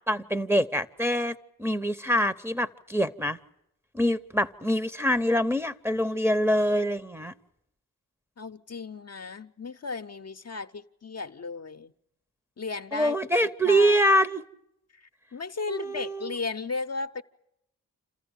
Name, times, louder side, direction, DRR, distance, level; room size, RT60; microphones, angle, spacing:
voice 1, 0.1-3.4 3.9-7.3 12.9-14.4 15.7-16.2, equal, 5° right, 0.9 m, -25 dB
voice 2, 8.4-11.9 12.6-13.2 13.4-14.2 14.9-17.2, left 4 dB, 45° left, 0.8 m, -35 dB
27.5 x 14.5 x 9.1 m
cardioid pair, 45°, 35 cm